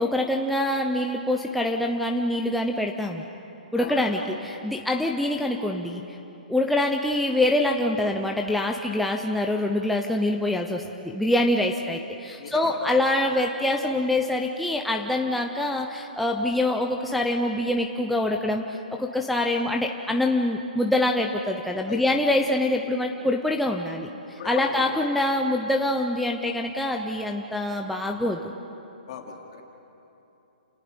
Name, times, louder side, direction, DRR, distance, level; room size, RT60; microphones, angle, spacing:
voice 1, 0.0-3.3 3.7-6.2 6.5-28.5, left 1 dB, ahead, 1 dB, 0.5 m, -25 dB
voice 2, 3.7-4.4 4.9-5.1 12.3-12.9 21.9-22.4 24.4-25.1 29.1-29.7, left 7 dB, 45° left, 2 dB, 2.7 m, -38 dB
30.0 x 18.5 x 5.1 m, 3.0 s
hypercardioid pair, 165°, 5 cm